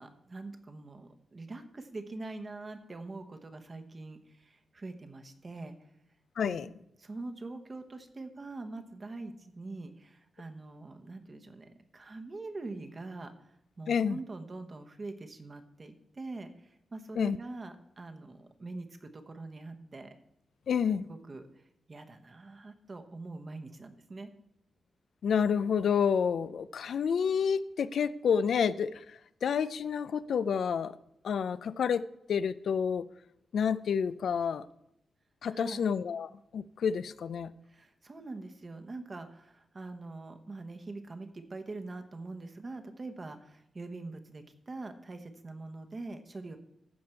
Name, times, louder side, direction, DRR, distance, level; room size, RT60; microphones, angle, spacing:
voice 1, 0.0-5.7 6.4-6.7 7.0-13.3 13.8-16.5 16.9-20.1 21.1-21.5 21.9-24.3 35.5-35.9 37.7-46.6, right 3 dB, 35° right, 1.1 m, -44 dB
voice 2, 6.4-6.7 13.9-14.2 17.2-17.4 20.7-21.1 25.2-28.9 29.4-30.9 31.2-32.0 32.3-33.0 33.5-34.6 35.4-37.5, left 7 dB, 75° left, 0.4 m, -29 dB
15.0 x 5.2 x 4.5 m
cardioid pair, 95°, 0 cm